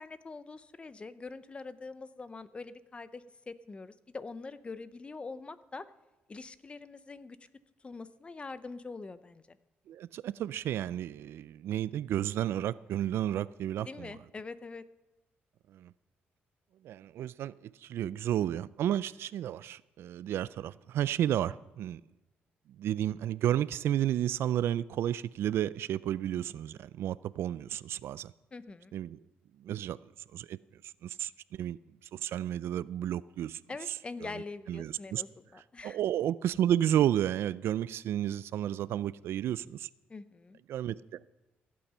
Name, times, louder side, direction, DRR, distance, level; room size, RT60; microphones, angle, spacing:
voice 1, 0.0-5.9 6.3-7.5 7.8-9.6 13.8-14.9 28.5-28.9 33.7-36.0 40.1-40.6, left 3 dB, 25° left, 0.7 m, -44 dB
voice 2, 9.9-14.1 15.7-15.9 16.8-22.0 22.8-28.3 28.9-29.2 29.6-30.0 30.3-30.6 31.0-31.8 32.1-33.6 34.7-35.2 35.8-39.9 40.7-41.3, right 11 dB, 75° right, 0.3 m, -32 dB
15.5 x 8.7 x 5.6 m
cardioid pair, 100°, 4 cm